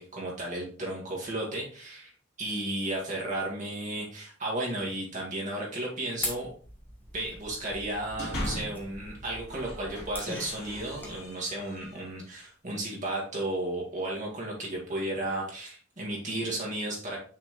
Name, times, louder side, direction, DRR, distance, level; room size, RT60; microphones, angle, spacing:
voice 1, 0.0-2.1 2.4-6.5 7.1-17.2, right 1 dB, 35° right, -3 dB, 1.7 m, -34 dB
sound 1, 6.2-11.2, left 1 dB, 10° left, 1.1 m, -41 dB
sound 2, 8.0-8.9 9.4-12.2, equal, 55° left, 2.5 m, -39 dB
6.0 x 4.3 x 3.7 m, 0.43 s
head